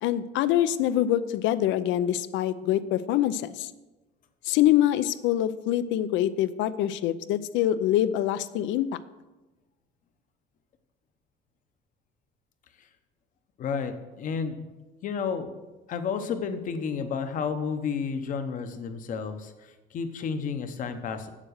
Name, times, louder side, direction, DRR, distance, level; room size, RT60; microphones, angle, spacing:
voice 1, 0.0-3.7 4.4-8.9, left 12 dB, 75° left, 15 dB, 0.6 m, -25 dB
voice 2, 13.6-14.6 15.0-15.5 15.9-21.3, left 6 dB, 40° left, 9 dB, 0.9 m, -31 dB
7.7 x 7.4 x 6.5 m, 1.1 s
cardioid pair, 170°, 20 cm